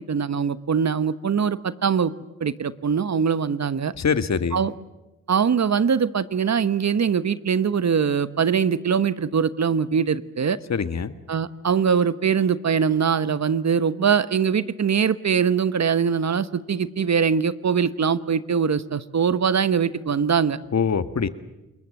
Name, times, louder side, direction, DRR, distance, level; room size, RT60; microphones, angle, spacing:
voice 1, 0.1-2.1 2.4-3.9 4.5-4.7 5.3-10.6 11.3-20.6, right 6 dB, 45° right, 15 dB, 1.1 m, -22 dB
voice 2, 4.0-4.6 10.7-11.1 20.7-21.3, left 6 dB, 45° left, 12 dB, 1.6 m, -23 dB
28.0 x 21.5 x 7.7 m, 1.0 s
hypercardioid pair, 40°, 37 cm